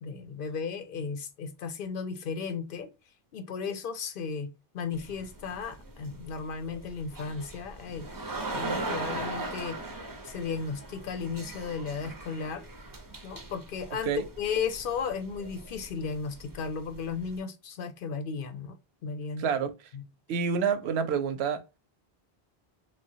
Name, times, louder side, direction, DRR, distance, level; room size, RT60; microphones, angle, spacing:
voice 1, 0.0-2.9 3.3-8.1 8.5-9.8 10.2-12.7 13.2-14.1 14.4-18.8 19.0-19.5 19.9-20.0, left 5 dB, 65° left, 0.7 m, -35 dB
sound 1, 4.9-17.4, right 2 dB, 25° right, 0.5 m, -40 dB
voice 2, 19.4-19.7 20.3-21.6, right 6 dB, 90° right, 0.8 m, -28 dB
3.2 x 2.1 x 2.7 m
omnidirectional pair, 1.0 m